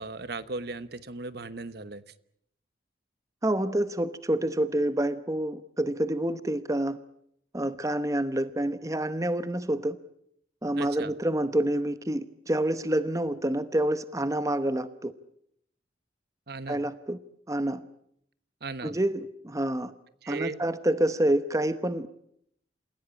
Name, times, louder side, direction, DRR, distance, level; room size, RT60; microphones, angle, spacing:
voice 1, 0.0-2.0 10.8-11.1 16.5-16.8 18.6-18.9 20.2-20.6, right 3 dB, 60° right, 14 dB, 1.1 m, -37 dB
voice 2, 3.4-7.0 7.5-10.0 10.6-15.1 16.7-17.2 17.5-17.8 18.8-19.9 20.3-22.1, right 1 dB, 20° right, 13 dB, 0.9 m, -27 dB
28.5 x 16.0 x 8.8 m, 0.71 s
head